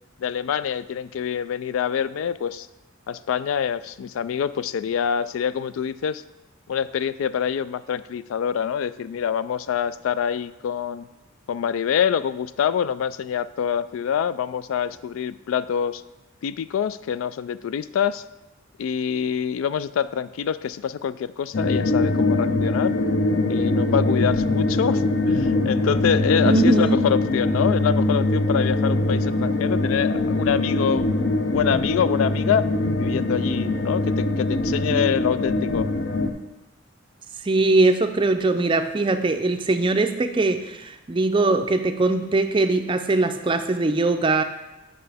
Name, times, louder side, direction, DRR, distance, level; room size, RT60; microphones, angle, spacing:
voice 1, 0.2-2.7 3.1-6.2 6.7-11.1 11.5-16.0 16.4-18.2 18.8-22.9 23.5-32.7 33.0-35.9, left 8 dB, 80° left, 15 dB, 0.3 m, -25 dB
sound 1, 21.5-36.3, left 2 dB, 55° left, 0.8 m, -22 dB
voice 2, 26.4-27.2 37.4-44.4, right 2 dB, 25° right, 8 dB, 0.4 m, -21 dB
8.9 x 6.5 x 3.5 m, 1.0 s
head